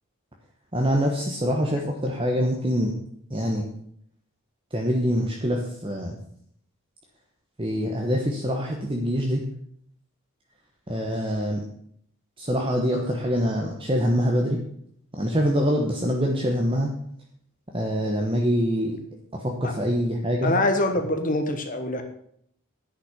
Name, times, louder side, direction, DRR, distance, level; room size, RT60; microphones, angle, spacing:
voice 1, 0.7-2.9 3.3-3.7 4.7-6.2 7.6-9.4 10.9-11.6 12.4-14.6 15.2-16.9 17.7-19.0 19.3-20.5, equal, 25° right, 1 dB, 1.1 m, -24 dB
voice 2, 20.4-22.0, left 2 dB, 35° left, 5 dB, 1.2 m, -24 dB
10.0 x 5.9 x 8.3 m, 0.68 s
head